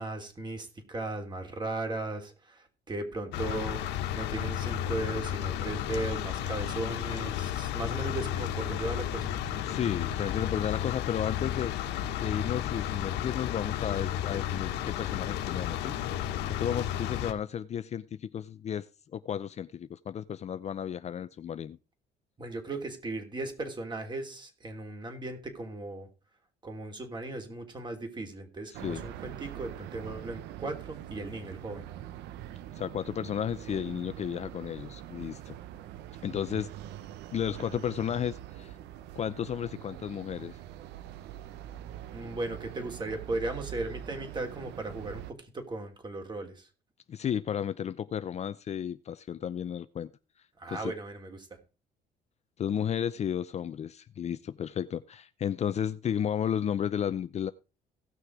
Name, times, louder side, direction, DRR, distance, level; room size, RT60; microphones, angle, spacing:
voice 1, 0.0-9.3 22.4-26.1 26.6-31.8 42.1-46.7 50.6-51.5, right 2 dB, 25° right, 3.3 m, -37 dB
sound 1, 3.3-17.3, left 10 dB, 90° left, 1.4 m, -33 dB
voice 2, 9.7-11.8 12.2-16.0 16.5-18.9 19.1-21.8 28.7-29.0 32.8-35.6 36.2-36.7 37.3-38.7 39.1-40.6 47.1-50.1 50.7-50.9 52.6-57.5, left 9 dB, 40° left, 0.6 m, -33 dB
sound 2, 28.7-45.3, right 12 dB, 85° right, 0.9 m, -44 dB
17.0 x 6.5 x 4.7 m
cardioid pair, 110°, 17 cm